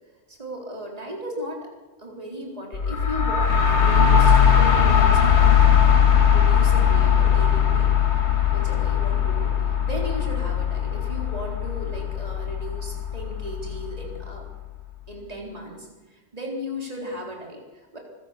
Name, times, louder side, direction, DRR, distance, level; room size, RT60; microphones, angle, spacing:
voice 1, 0.3-1.7 2.0-5.5 6.3-7.9 8.5-14.4 15.1-18.0, equal, 35° right, -1 dB, 4.1 m, -36 dB
sound 1, 2.7-14.4, left 8 dB, 80° left, 2.0 m, -19 dB
25.0 x 16.0 x 6.7 m, 1.2 s
omnidirectional pair, 1.1 m